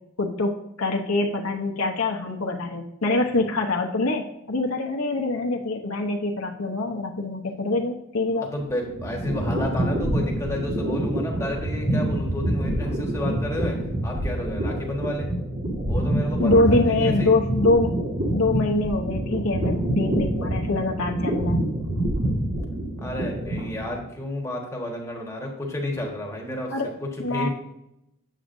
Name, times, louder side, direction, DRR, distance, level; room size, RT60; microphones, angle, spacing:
voice 1, 0.2-0.5 0.8-8.5 16.4-17.9 18.3-21.7 26.7-26.9 27.2-27.5, left 2 dB, 75° left, 1 dB, 0.9 m, -24 dB
voice 2, 8.4-13.8 14.0-15.3 15.9-17.3 22.4-22.5 23.0-26.7 27.0-27.5, left 1 dB, 15° left, -1 dB, 1.5 m, -31 dB
sound 1, 8.6-24.0, right 1 dB, 45° right, 1.9 m, -26 dB
9.1 x 7.7 x 2.6 m, 0.85 s
head